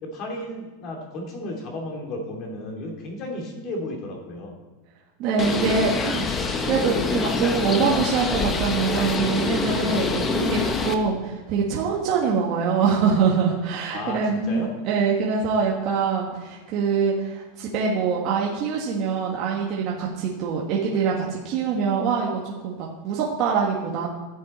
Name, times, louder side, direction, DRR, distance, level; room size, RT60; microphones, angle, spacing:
voice 1, 0.0-4.6 9.7-10.0 13.9-14.7, left 1 dB, 40° left, 1 dB, 2.7 m, -33 dB
voice 2, 5.2-6.3 6.6-24.1, right 5 dB, 45° right, -3 dB, 1.5 m, -24 dB
Bird, 5.4-10.9, left 4 dB, 20° left, 0.9 m, -25 dB
13.5 x 7.6 x 4.3 m, 1.2 s
supercardioid pair, 150°, 0 cm